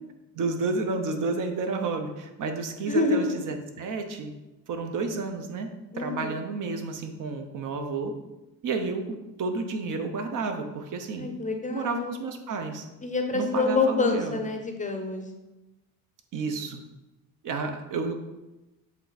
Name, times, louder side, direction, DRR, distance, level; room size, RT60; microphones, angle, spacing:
voice 1, 0.3-4.3 4.7-5.7 6.0-8.1 8.6-11.3 11.7-12.9 13.3-14.4 16.3-16.8 17.4-18.2, right 4 dB, 55° right, 6 dB, 0.9 m, -31 dB
voice 2, 2.9-3.4 5.9-6.4 11.2-12.1 13.0-15.2, left 3 dB, 20° left, 4 dB, 0.6 m, -27 dB
7.5 x 3.4 x 4.0 m, 1.0 s
cardioid pair, 120°, 38 cm